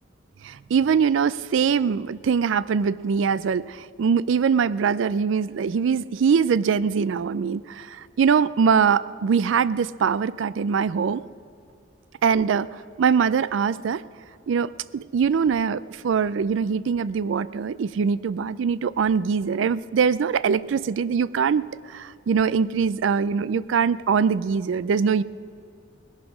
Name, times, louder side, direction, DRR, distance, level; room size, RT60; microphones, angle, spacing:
voice 1, 0.4-11.2 12.2-12.7 13.0-14.0 14.5-25.2, right 6 dB, 75° right, 17 dB, 0.4 m, -22 dB
19.0 x 11.0 x 6.1 m, 2.4 s
head